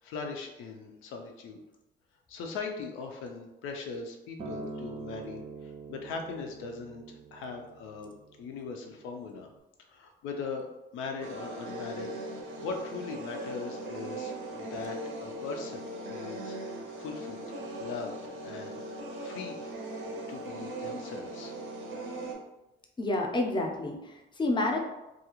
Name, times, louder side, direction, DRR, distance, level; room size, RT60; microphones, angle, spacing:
voice 1, 0.0-1.6 2.3-9.5 9.9-10.7 10.9-12.1 12.6-16.6 17.0-17.5 17.8-18.1 18.4-19.7 20.3-21.5, left 4 dB, 90° left, 3 dB, 0.5 m, -40 dB
Acoustic guitar, 4.4-8.7 9.5-9.6, right 3 dB, 30° right, 0.4 m, -44 dB
sound 1, 11.2-22.4, right 1 dB, 80° right, 0.6 m, -39 dB
voice 2, 23.0-24.8, left 2 dB, 25° left, 2 dB, 0.5 m, -29 dB
2.4 x 2.3 x 2.9 m, 0.97 s
cardioid pair, 90°, 20 cm